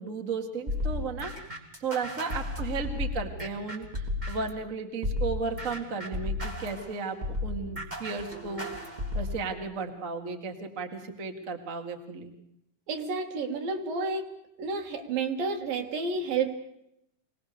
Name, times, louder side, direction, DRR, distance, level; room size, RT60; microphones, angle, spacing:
voice 1, 0.0-1.3 1.8-12.3, right 4 dB, 30° right, 3 dB, 1.5 m, -35 dB
sound 1, 0.7-4.6 5.0-9.4, left 2 dB, 15° right, 2.3 m, -33 dB
voice 2, 12.9-14.3 14.6-16.6, right 4 dB, 65° right, 4 dB, 3.4 m, -30 dB
24.0 x 19.0 x 6.9 m, 0.79 s
omnidirectional pair, 4.5 m